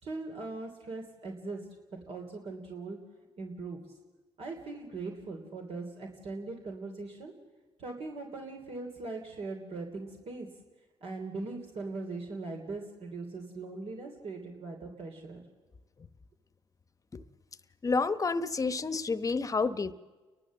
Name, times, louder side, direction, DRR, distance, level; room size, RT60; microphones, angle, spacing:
voice 1, 0.0-1.6 1.9-3.0 3.4-3.8 4.4-7.3 7.8-10.5 11.0-15.4, right 3 dB, 65° right, 2 dB, 3.0 m, -40 dB
voice 2, 17.8-19.9, left 4 dB, 30° left, 12 dB, 1.0 m, -29 dB
30.0 x 12.0 x 7.5 m, 1.3 s
cardioid pair, 90°, 11 cm